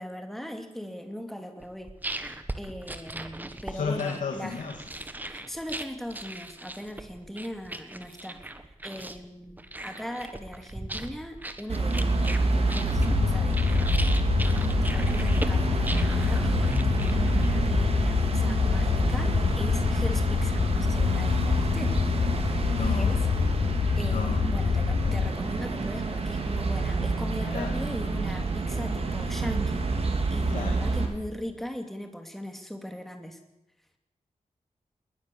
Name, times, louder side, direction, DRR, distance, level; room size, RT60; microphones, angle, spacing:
voice 1, 0.0-1.9 2.5-4.6 5.3-8.4 8.8-14.0 14.4-22.0 22.7-23.3 24.0-33.4, equal, ahead, 5 dB, 2.6 m, -39 dB
sound 1, 1.6-17.7, right 1 dB, 15° right, 1.4 m, -39 dB
voice 2, 3.7-4.8 22.7-23.2 24.1-24.5 27.4-27.8 30.5-30.8, left 5 dB, 80° left, 3 dB, 2.5 m, -33 dB
sound 2, 11.7-31.1, right 3 dB, 50° right, 3.5 m, -28 dB
sound 3, 12.9-25.3, left 6 dB, 45° left, 0.6 m, -26 dB
20.5 x 19.5 x 7.1 m, 0.93 s
wide cardioid pair, 170°, 13 cm